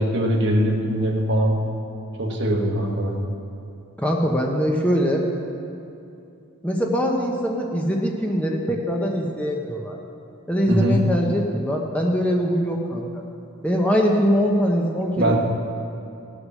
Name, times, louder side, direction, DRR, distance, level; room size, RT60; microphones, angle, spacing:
voice 1, 0.0-1.6 2.2-3.2 10.7-11.0 15.2-15.4, right 1 dB, 50° right, 0 dB, 1.5 m, -21 dB
voice 2, 4.0-5.2 6.6-10.0 10.5-13.2 13.6-15.4, equal, 5° left, -1 dB, 0.9 m, -22 dB
17.5 x 6.6 x 6.4 m, 2.7 s
head